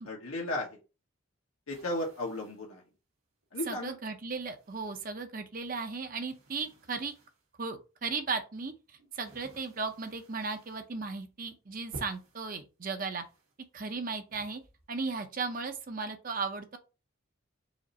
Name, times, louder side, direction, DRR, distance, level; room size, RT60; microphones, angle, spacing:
voice 1, 0.1-0.8 1.7-2.8 3.5-4.0, left 1 dB, 80° left, 1.2 m, -35 dB
sound 1, 1.7-2.8 3.4-3.5 4.5-5.4 5.7-7.5 8.2-10.9 11.3-11.5 11.9-12.5 13.2-14.0 14.3-15.3, right 1 dB, 85° right, 1.8 m, -54 dB
voice 2, 3.7-7.1 7.6-8.7 9.1-13.2 13.7-14.6 14.9-16.8, right 4 dB, 40° right, 0.7 m, -36 dB
5.0 x 2.6 x 4.0 m
head